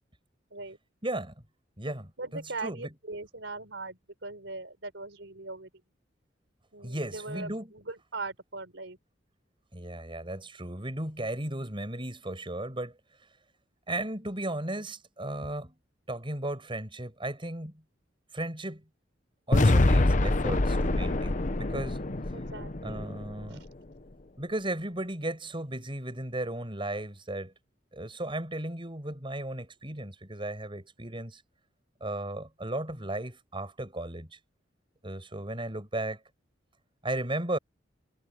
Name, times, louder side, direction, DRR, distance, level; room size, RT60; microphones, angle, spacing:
voice 1, 1.0-1.3 1.8-2.9 6.8-7.7 9.7-13.0 13.9-15.7 16.1-17.8 18.3-18.8 19.5-22.0 22.8-23.6 24.4-27.5 27.9-31.4 32.0-34.4 35.0-36.2 37.0-37.6, right 1 dB, 30° right, 6.7 m, -35 dB
voice 2, 2.2-5.7 6.7-9.0 22.3-23.1 23.5-23.6, right 3 dB, 80° right, 4.4 m, -40 dB
sound 1, 19.5-23.7, left 2 dB, 45° left, 0.9 m, -25 dB
head